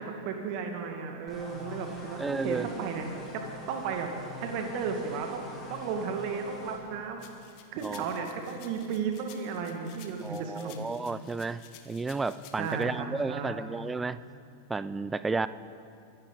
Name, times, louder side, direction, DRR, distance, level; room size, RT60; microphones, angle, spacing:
voice 1, 0.0-3.1 3.3-7.3 7.7-10.8 12.6-13.0 13.3-13.6, right 5 dB, 45° right, 4 dB, 2.0 m, -34 dB
sound 1, 1.3-6.8, left 2 dB, 15° left, 2.9 m, -44 dB
voice 2, 2.2-2.7 7.8-8.1 10.2-14.2 14.7-15.5, right 3 dB, 10° right, 15 dB, 0.5 m, -32 dB
sound 2, 7.2-12.8, left 9 dB, 45° left, 1.3 m, -53 dB
24.5 x 11.0 x 4.0 m, 2.4 s
figure-of-eight pair, 90°, 0 cm